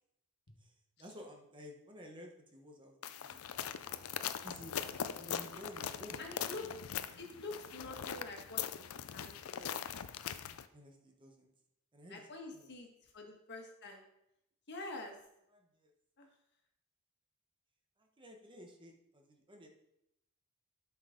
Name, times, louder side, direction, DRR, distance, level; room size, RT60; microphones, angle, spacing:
voice 1, 0.6-3.6 4.4-6.3 10.7-11.5 11.9-12.7 15.5-15.9 18.0-19.7, equal, 25° right, 2 dB, 1.0 m, -53 dB
sound 1, 3.0-10.7, left 8 dB, 75° left, 0.5 m, -41 dB
voice 2, 6.2-6.7 7.2-8.9 9.1-9.7 12.1-12.9 13.1-14.0 14.7-15.1 16.2-16.3, left 2 dB, 55° left, 2 dB, 1.6 m, -46 dB
12.0 x 5.8 x 3.8 m, 0.82 s
head